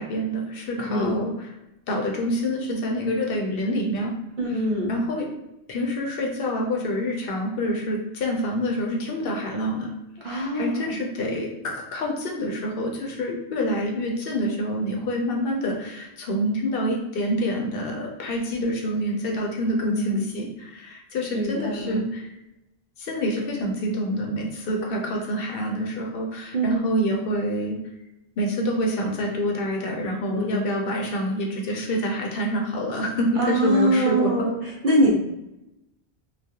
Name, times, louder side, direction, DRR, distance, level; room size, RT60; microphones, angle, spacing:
voice 1, 0.0-1.5 1.9-4.1 4.5-4.6 4.9-5.3 5.7-9.9 10.2-22.3 23.0-27.8 28.4-34.5, equal, 70° left, 0 dB, 0.7 m, -27 dB
voice 2, 4.4-4.9 10.2-10.9 19.8-20.2 21.3-22.0 26.5-26.8 30.3-30.6 33.4-34.5 34.8-35.1, right 1 dB, 55° right, -2 dB, 0.7 m, -23 dB
2.3 x 2.2 x 2.7 m, 0.91 s
omnidirectional pair, 1.0 m